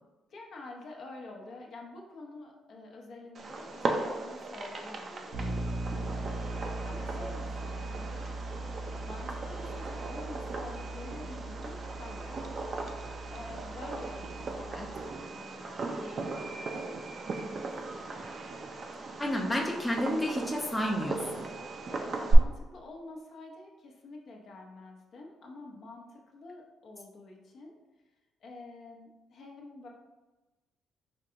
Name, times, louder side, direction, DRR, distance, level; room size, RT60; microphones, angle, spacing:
voice 1, 0.3-5.5 5.9-8.2 9.0-12.5 13.0-15.1 15.4-17.5 17.9-18.0 19.0-19.4 21.9-27.8 28.4-29.9, left 2 dB, 60° left, 0 dB, 0.7 m, -48 dB
Fireworks, 3.3-22.3, right 2 dB, 50° right, 0.5 m, -37 dB
Bass guitar, 5.3-15.1, right 2 dB, 80° right, 0.8 m, -39 dB
voice 2, 19.2-21.5, equal, 15° left, 0 dB, 0.5 m, -31 dB
4.5 x 2.7 x 2.5 m, 1.1 s
cardioid pair, 90°, 0 cm